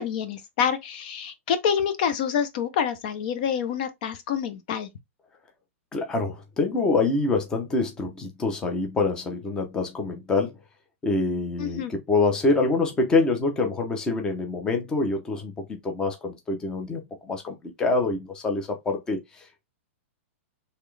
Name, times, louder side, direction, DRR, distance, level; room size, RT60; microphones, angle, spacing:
voice 1, 0.0-4.9 11.6-11.9, left 8 dB, 40° left, 0.8 m, -27 dB
voice 2, 5.9-10.6 11.0-17.0 17.3-19.2, left 3 dB, 10° left, 0.8 m, -25 dB
4.2 x 3.3 x 3.3 m
supercardioid pair, 170°, 7 cm